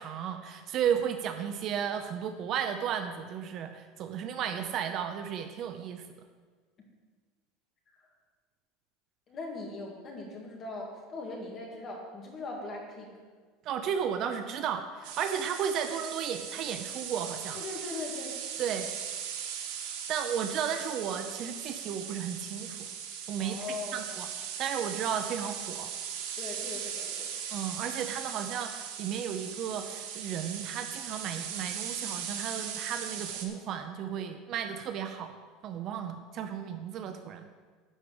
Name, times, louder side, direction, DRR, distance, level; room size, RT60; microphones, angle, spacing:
voice 1, 0.0-6.0 13.6-17.6 18.6-18.9 20.1-22.9 23.3-23.6 23.9-24.3 24.6-25.9 27.5-35.3 35.6-37.5, right 8 dB, 35° right, 7 dB, 0.6 m, -34 dB
voice 2, 9.3-13.2 17.5-18.3 23.4-24.2 26.4-27.3, left 3 dB, 25° left, -1 dB, 2.1 m, -40 dB
sound 1, 15.0-33.4, right 8 dB, 90° right, 1.6 m, -39 dB
12.0 x 4.9 x 7.7 m, 1.5 s
cardioid pair, 175°, 0 cm